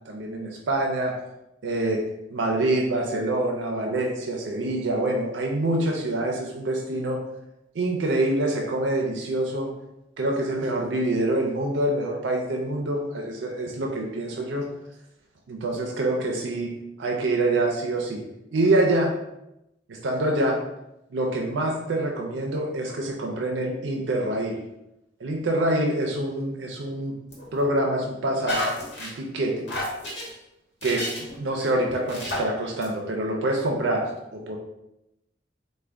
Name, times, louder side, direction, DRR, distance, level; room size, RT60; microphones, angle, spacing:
voice 1, 0.1-1.2 1.6-2.0 2.3-7.2 7.7-9.7 10.2-14.7 15.5-16.7 17.0-18.2 18.5-19.1 19.9-20.6 21.1-24.6 25.2-27.1 27.5-28.7 29.0-29.7 30.8-31.1 31.4-34.6, right 1 dB, 80° right, 1 dB, 0.5 m, -26 dB
sound 1, 27.3-27.8 28.4-29.1 29.7-30.3 30.8-31.4 31.9-32.4 32.8-32.9, left 1 dB, 75° left, 1.1 m, -31 dB
3.3 x 2.2 x 3.5 m, 0.89 s
head